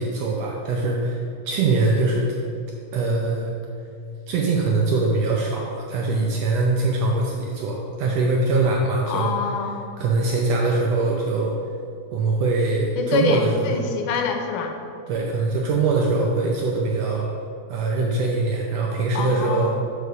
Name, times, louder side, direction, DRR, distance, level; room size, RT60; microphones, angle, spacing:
voice 1, 0.0-2.3 2.9-3.5 4.3-9.5 10.0-11.6 12.1-13.9 15.1-17.3 17.7-19.8, right 3 dB, 75° right, -1 dB, 1.5 m, -22 dB
voice 2, 9.1-9.8 13.0-14.8 19.1-19.7, left 6 dB, 90° left, 4 dB, 2.3 m, -25 dB
6.7 x 4.8 x 5.5 m, 2.4 s
omnidirectional pair, 3.6 m